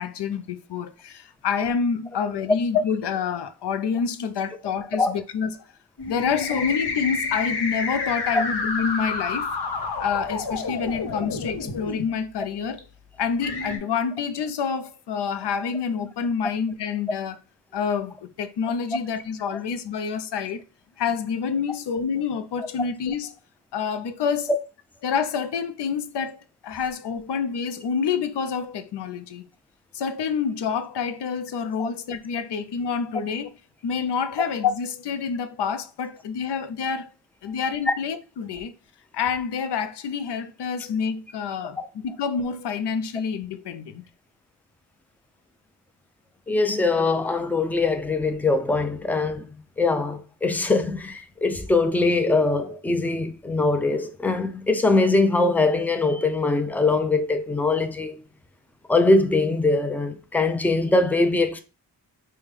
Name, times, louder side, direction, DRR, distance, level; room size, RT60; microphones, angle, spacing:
voice 1, 0.0-5.6 6.1-9.5 10.0-12.8 13.2-17.4 17.7-20.6 21.0-23.4 23.7-24.5 25.0-29.5 29.9-33.5 33.8-37.1 37.4-38.7 39.1-44.0, left 6 dB, 85° left, 0.6 m, -27 dB
sound 1, 6.0-12.0 12.8-12.9 13.4-13.8, left 4 dB, 70° left, 1.1 m, -29 dB
voice 2, 46.5-58.2 58.9-61.6, left 3 dB, 5° left, 0.5 m, -22 dB
5.2 x 2.3 x 3.2 m
wide cardioid pair, 80°, 40 cm